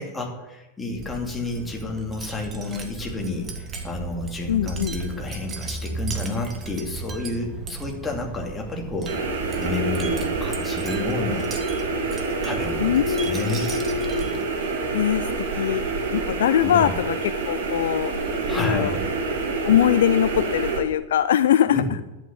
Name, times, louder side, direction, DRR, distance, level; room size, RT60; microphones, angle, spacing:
voice 1, 0.0-9.2 9.6-11.5 12.4-13.7 16.6-16.9 18.5-19.0 21.7-21.8, left 3 dB, 15° left, 0 dB, 2.6 m, -30 dB
Wind chime, 0.9-14.6, right 4 dB, 25° right, 1.8 m, -36 dB
voice 2, 4.5-4.9 12.8-14.3 14.9-15.3 15.6-15.8 16.1-18.1 18.6-19.0 19.6-21.8, left 10 dB, 60° left, 15 dB, 0.3 m, -22 dB
sound 1, 9.1-20.8, right 3 dB, 55° right, 2.5 m, -27 dB
11.0 x 8.7 x 6.9 m, 1.0 s
figure-of-eight pair, 90°, 0 cm